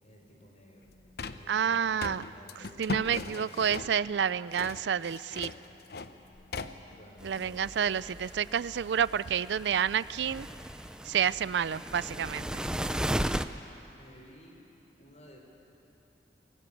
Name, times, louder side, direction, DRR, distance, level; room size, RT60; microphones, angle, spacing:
voice 1, 0.0-1.0 1.3-3.0 6.9-7.7 13.9-14.7 15.0-15.4, equal, 40° left, 1 dB, 4.1 m, -54 dB
sound 1, 0.8-8.3, left 3 dB, 60° left, 0.8 m, -40 dB
voice 2, 1.5-2.2 2.8-5.5 7.2-10.5 11.0-12.7, right 8 dB, 75° right, 18 dB, 0.4 m, -29 dB
sound 2, 7.2-13.5, right 1 dB, 5° right, 0.5 m, -36 dB
22.0 x 18.0 x 8.6 m, 3.0 s
head